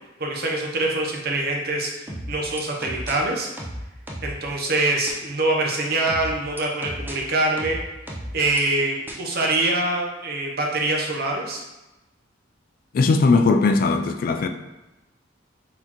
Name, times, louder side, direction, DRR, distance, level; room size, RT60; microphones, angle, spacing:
voice 1, 0.2-1.9 2.3-3.5 4.2-7.8 8.3-11.6, right 2 dB, 55° right, 0.8 m, -24 dB
sound 1, 2.1-3.1 3.6-4.4 5.1-5.2 6.1-7.1 7.6-8.6 9.1-9.2, equal, 10° right, 0.6 m, -33 dB
voice 2, 12.9-14.5, left 3 dB, 50° left, 0.3 m, -18 dB
4.1 x 3.8 x 3.0 m
head